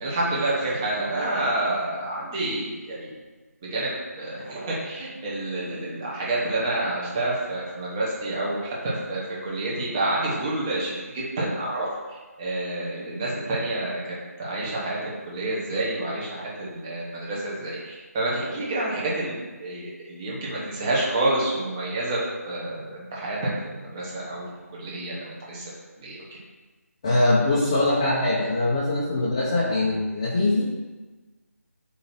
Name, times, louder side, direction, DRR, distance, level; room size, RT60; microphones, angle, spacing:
voice 1, 0.0-3.1 3.6-3.9 4.2-14.0 14.4-23.4 23.6-24.4 24.7-25.6 26.0-26.2, right 2 dB, 15° right, -6 dB, 1.1 m, -28 dB
voice 2, 27.0-30.6, left 2 dB, 20° left, -8 dB, 0.9 m, -22 dB
7.5 x 2.9 x 5.8 m, 1.3 s
figure-of-eight pair, 175°, 9 cm